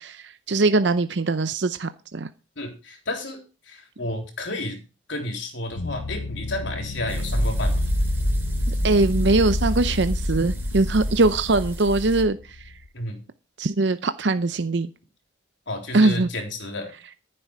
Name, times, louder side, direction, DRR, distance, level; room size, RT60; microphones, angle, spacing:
voice 1, 0.0-2.3 8.7-12.4 13.6-14.9 15.9-16.3, right 2 dB, 65° right, 0.7 m, -21 dB
voice 2, 2.6-4.8 5.1-7.9 12.9-13.2 15.7-16.9, left 1 dB, 70° left, 3.7 m, -31 dB
sound 1, 5.7-12.9, left 2 dB, 85° left, 0.9 m, -32 dB
sound 2, 7.1-12.2, equal, 10° right, 2.8 m, -27 dB
14.0 x 7.7 x 4.7 m
head